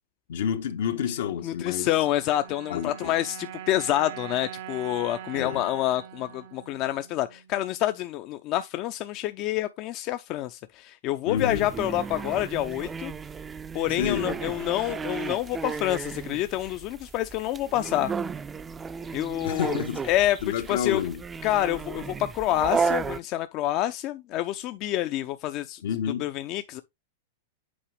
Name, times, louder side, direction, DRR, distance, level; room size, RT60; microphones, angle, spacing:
voice 1, 0.3-1.9 2.7-3.1 5.3-5.6 11.3-11.7 14.0-14.4 19.4-20.0 20.4-21.2 25.8-26.3, left 8 dB, 70° left, 1.2 m, -29 dB
voice 2, 1.4-13.1 13.7-18.1 19.1-19.8 20.1-20.4 20.7-21.0 21.4-25.8 26.2-26.8, left 14 dB, 45° left, 0.6 m, -27 dB
sound 1, 1.7-8.1, right 11 dB, 65° right, 0.9 m, -43 dB
sound 2, 11.4-23.2, right 5 dB, 15° right, 0.5 m, -34 dB
8.6 x 4.8 x 3.3 m
hypercardioid pair, 115°, 0 cm